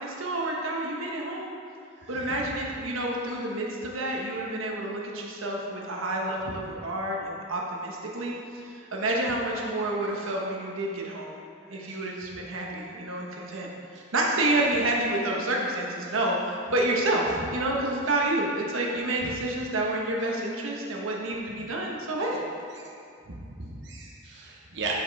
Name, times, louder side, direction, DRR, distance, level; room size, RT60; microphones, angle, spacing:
voice 1, 0.0-1.5 2.1-11.4 11.7-13.7 14.1-22.4, right 1 dB, 85° right, -1 dB, 1.2 m, -29 dB
voice 2, 23.3-25.0, right 3 dB, 60° right, -4 dB, 0.9 m, -36 dB
11.5 x 5.3 x 3.5 m, 2.5 s
head